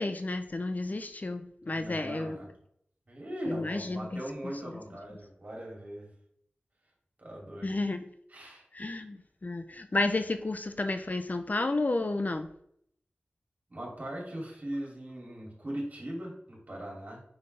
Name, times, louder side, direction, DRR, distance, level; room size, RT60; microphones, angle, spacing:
voice 1, 0.0-2.4 3.5-4.2 4.6-4.7 7.6-8.0 8.7-12.5, left 2 dB, 45° left, 8 dB, 0.5 m, -31 dB
voice 2, 1.6-2.5 3.1-6.1 7.2-7.7 8.3-8.7 13.7-17.2, right 1 dB, 45° right, -2 dB, 2.7 m, -40 dB
5.6 x 5.5 x 3.3 m, 0.69 s
wide cardioid pair, 50°, 4 cm